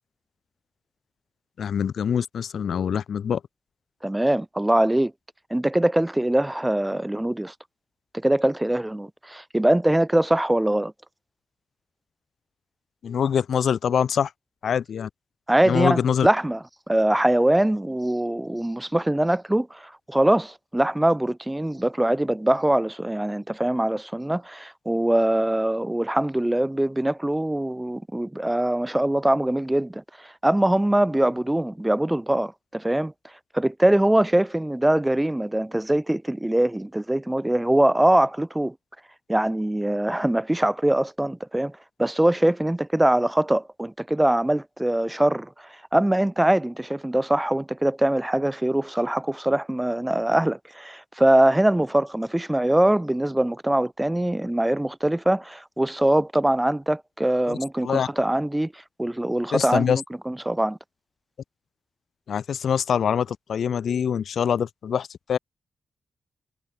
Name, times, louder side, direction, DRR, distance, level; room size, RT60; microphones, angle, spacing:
voice 1, 1.6-3.4 13.0-14.3 14.6-15.1 15.7-16.3 57.5-57.6 57.8-58.1 59.5-60.0 62.3-65.4, left 8 dB, 80° left, 5.3 m, -24 dB
voice 2, 4.0-5.1 5.5-7.5 8.1-10.9 15.5-33.1 33.5-38.7 39.3-41.7 42.0-60.8, right 1 dB, 10° right, 3.8 m, -23 dB
cardioid pair, 75°, 0 cm